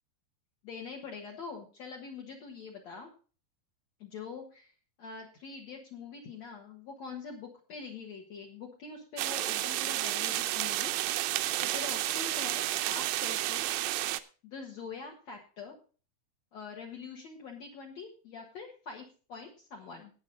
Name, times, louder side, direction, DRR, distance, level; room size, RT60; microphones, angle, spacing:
voice 1, 0.6-3.1 4.0-4.7 5.0-10.9 11.6-13.7 14.4-15.8 16.5-20.1, left 5 dB, 55° left, -1 dB, 2.3 m, -44 dB
sound 1, 9.2-14.2, right 15 dB, 80° right, 2.2 m, -31 dB
19.0 x 6.3 x 3.9 m, 0.37 s
omnidirectional pair, 4.5 m